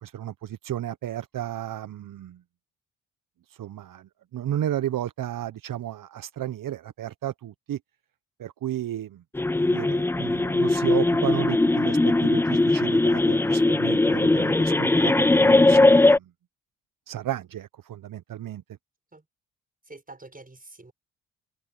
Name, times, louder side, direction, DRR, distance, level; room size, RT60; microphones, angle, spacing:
voice 1, 0.0-2.4 3.5-7.8 8.4-9.2 9.6-16.3 17.1-18.6, right 12 dB, 60° right, 1.0 m, -33 dB
sound 1, 9.3-16.2, left 2 dB, 5° left, 0.4 m, -20 dB
voice 2, 19.8-20.9, right 2 dB, 25° right, 6.5 m, -46 dB
hypercardioid pair, 50°, 36 cm